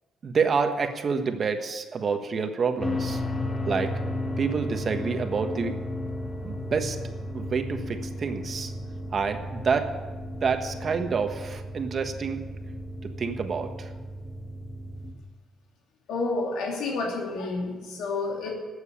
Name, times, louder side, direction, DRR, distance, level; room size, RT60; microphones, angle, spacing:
voice 1, 0.2-3.2 3.7-3.9 4.4-5.8 6.4-7.0 7.3-8.7 9.1-9.9 10.4-12.4 13.0-13.9, right 5 dB, 45° right, 6 dB, 1.4 m, -28 dB
sound 1, 2.8-15.1, left 1 dB, 25° left, 1.9 m, -34 dB
voice 2, 16.1-18.5, left 3 dB, 85° left, 0 dB, 2.8 m, -29 dB
12.5 x 8.1 x 8.6 m, 1.3 s
cardioid pair, 90°, 0 cm